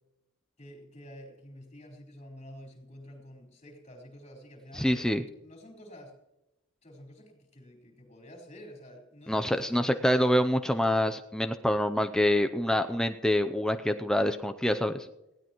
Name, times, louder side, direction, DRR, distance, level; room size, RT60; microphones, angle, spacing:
voice 1, 0.6-6.2 6.8-10.4, equal, 35° left, 1 dB, 4.4 m, -49 dB
voice 2, 4.7-5.2 9.3-15.1, equal, 5° left, 6 dB, 0.5 m, -26 dB
19.5 x 16.0 x 3.0 m, 0.92 s
head